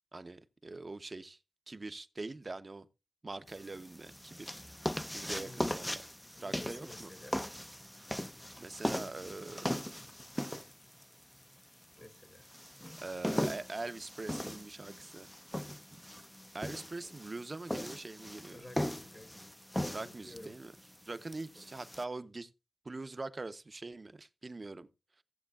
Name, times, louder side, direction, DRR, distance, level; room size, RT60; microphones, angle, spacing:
voice 1, 0.1-1.4 1.7-2.9 3.2-4.6 5.1-6.0 6.4-7.1 8.6-9.8 13.0-15.3 15.9-16.0 16.5-18.6 19.9-20.7 21.0-22.5 22.8-24.9, right 3 dB, 35° right, 0.7 m, -43 dB
sound 1, 3.5-22.0, equal, 5° left, 0.5 m, -39 dB
voice 2, 5.3-5.8 6.3-7.4 12.0-12.5 18.5-19.5 20.0-20.5, left 1 dB, 25° left, 1.1 m, -52 dB
16.5 x 7.9 x 2.4 m
wide cardioid pair, 90°, 0 cm